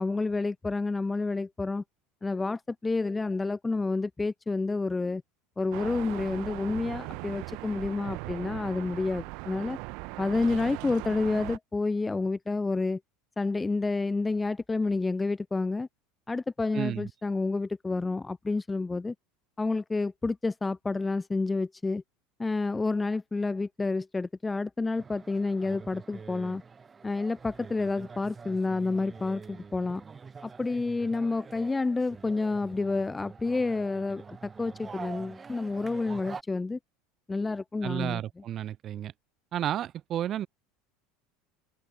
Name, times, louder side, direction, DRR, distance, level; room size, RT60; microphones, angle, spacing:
voice 1, 0.0-1.8 2.2-5.2 5.6-9.8 10.2-13.0 13.4-15.9 16.3-19.1 19.6-22.0 22.4-26.6 27.0-30.0 30.4-36.8 37.3-38.2, left 3 dB, 10° left, 0.3 m, -29 dB
sound 1, 5.7-11.6, right 31 dB, 65° right, 0.7 m, -39 dB
voice 2, 16.7-17.1 37.8-39.1 39.5-40.5, right 11 dB, 40° right, 1.5 m, -32 dB
sound 2, 25.0-36.4, right 5 dB, 20° right, 0.9 m, -46 dB
open air
supercardioid pair, 130°, 0 cm